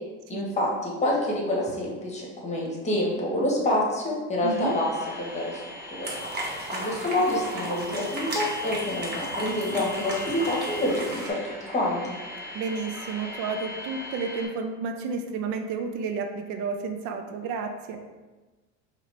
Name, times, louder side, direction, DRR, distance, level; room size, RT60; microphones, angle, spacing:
voice 1, 0.3-4.9 5.2-5.6 5.9-6.1 6.7-11.4 11.7-12.0, left 1 dB, 20° left, -3 dB, 1.1 m, -27 dB
sound 1, 4.4-14.5, left 1 dB, 5° right, 1.0 m, -39 dB
voice 2, 4.4-4.8 12.5-18.0, right 4 dB, 70° right, 6 dB, 0.5 m, -31 dB
sound 2, 6.0-11.3, right 1 dB, 30° right, 1.1 m, -35 dB
4.8 x 3.0 x 3.3 m, 1.2 s
cardioid pair, 125°, 31 cm